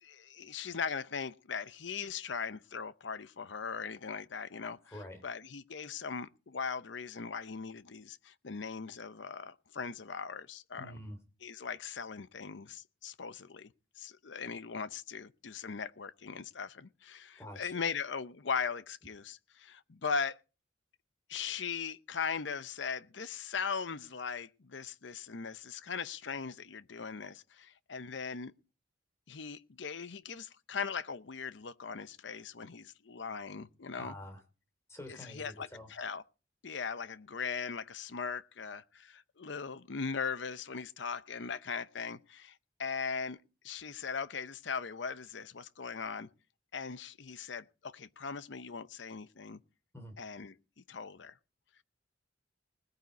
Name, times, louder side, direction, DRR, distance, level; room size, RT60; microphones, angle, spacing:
voice 1, 0.0-4.8 5.2-10.9 11.4-20.4 21.3-28.5 29.3-34.1 35.4-36.2 36.6-43.4 43.6-46.3 46.7-49.6 50.2-51.4, left 5 dB, 70° left, 0.7 m, -39 dB
voice 2, 4.8-5.2 10.8-11.2 17.4-17.9 34.0-34.4 34.9-35.9 49.9-50.2, left 1 dB, 15° left, 3.3 m, -47 dB
20.0 x 9.1 x 4.1 m
head